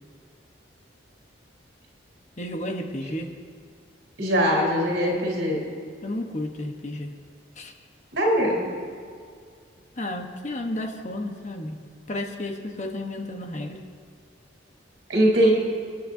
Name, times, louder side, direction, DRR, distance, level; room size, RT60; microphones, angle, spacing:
voice 1, 2.4-3.3 6.0-7.1 7.6-7.7 10.0-11.8 12.1-13.8, left 1 dB, 40° left, 3 dB, 1.1 m, -32 dB
voice 2, 4.2-5.6 8.1-8.6 15.1-15.5, equal, 75° right, -2 dB, 3.9 m, -21 dB
29.0 x 10.0 x 2.8 m, 2.2 s
head